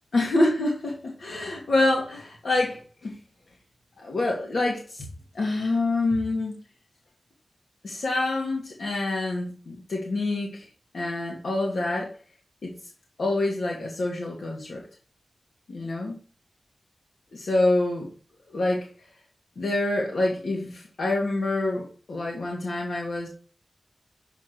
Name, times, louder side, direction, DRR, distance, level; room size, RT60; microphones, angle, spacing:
voice 1, 0.1-3.1 4.0-5.1 5.3-6.6 7.8-10.7 10.9-12.1 12.6-12.7 13.2-14.8 15.7-16.2 17.3-18.1 18.5-18.9 19.6-23.3, left 2 dB, 85° left, -1 dB, 1.8 m, -26 dB
7.2 x 5.4 x 4.5 m, 0.39 s
wide cardioid pair, 120°, 0 cm